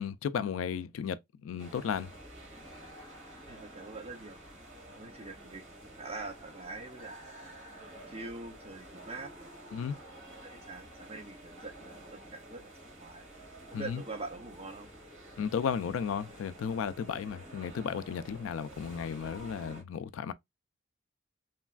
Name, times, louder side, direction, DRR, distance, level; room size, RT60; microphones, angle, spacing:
voice 1, 0.0-2.1 9.7-10.0 13.7-14.0 15.4-20.3, left 7 dB, 80° left, 0.3 m, -34 dB
sound 1, 1.6-19.8, right 1 dB, 75° right, 1.5 m, -50 dB
voice 2, 3.5-4.4 4.9-7.2 8.1-9.5 10.1-12.7 13.0-13.3 13.7-14.9, right 3 dB, 30° right, 0.7 m, -44 dB
3.2 x 2.2 x 2.3 m
head